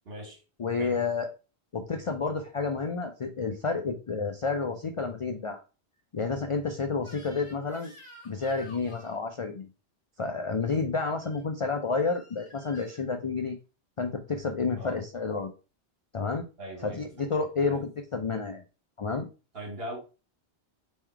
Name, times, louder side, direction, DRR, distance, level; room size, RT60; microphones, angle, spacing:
voice 1, 0.1-0.4 0.8-1.0 14.8-15.0 16.6-17.3 17.6-17.8 19.5-20.0, right 1 dB, 60° right, 2.0 m, -40 dB
voice 2, 0.6-1.3 1.7-5.6 6.1-7.9 8.2-9.7 10.2-13.6 14.0-15.5 16.1-16.4 16.8-18.6 19.0-19.2, left 4 dB, 50° left, 0.4 m, -30 dB
Crying sobbing / Screech, 7.0-9.2 11.1-11.4 12.1-13.1, left 1 dB, 30° left, 1.2 m, -51 dB
3.7 x 3.1 x 4.4 m
omnidirectional pair, 1.1 m